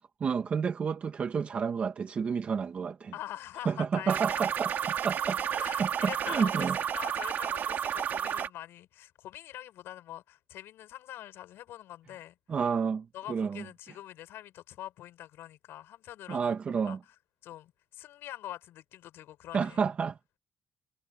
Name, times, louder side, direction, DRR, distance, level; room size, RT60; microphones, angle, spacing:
voice 1, 0.2-3.1 3.7-5.9 6.2-6.8 12.5-13.6 16.3-17.0 19.5-20.2, right 6 dB, 35° right, 1.0 m, -30 dB
voice 2, 3.1-4.5 5.6-12.6 13.1-16.6 16.8-17.0 17.4-19.8, left 13 dB, 90° left, 5.3 m, -44 dB
sound 1, 4.1-8.5, right 8 dB, 50° right, 2.2 m, -31 dB
cardioid pair, 160°, 4 cm